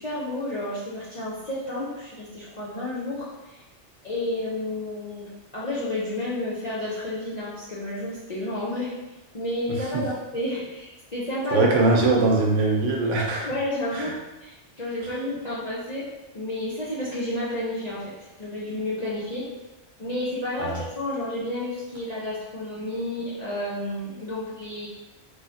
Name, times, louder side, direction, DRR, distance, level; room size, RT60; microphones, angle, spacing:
voice 1, 0.0-3.6 4.0-8.9 9.3-11.7 13.4-16.1 16.3-18.1 18.4-19.5 20.0-24.9, left 1 dB, 45° left, -9 dB, 0.6 m, -31 dB
voice 2, 11.5-13.5 13.9-14.1 20.6-20.8, right 3 dB, 85° right, 0 dB, 1.0 m, -21 dB
3.1 x 3.1 x 2.7 m, 1.1 s
omnidirectional pair, 1.2 m